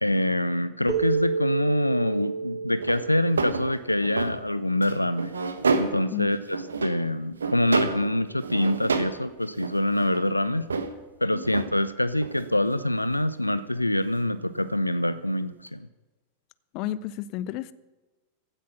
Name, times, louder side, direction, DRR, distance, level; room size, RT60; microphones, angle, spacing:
voice 1, 0.0-5.3 5.8-10.7 11.2-15.8, left 1 dB, 85° left, 15 dB, 0.4 m, -25 dB
Keyboard (musical), 0.9-4.1, right 5 dB, 15° right, 1.8 m, -30 dB
sound 1, 2.8-4.4 4.8-6.1 6.4-7.1 7.4-8.1 8.4-9.2 9.5-11.0 11.4-11.7 12.1-12.5 13.1-13.2 15.7-15.8, right 4 dB, 75° right, 1.1 m, -29 dB
voice 2, 16.7-17.7, left 12 dB, 45° left, 17 dB, 0.6 m, -32 dB
15.5 x 8.4 x 6.0 m, 1.1 s
figure-of-eight pair, 90°, 0 cm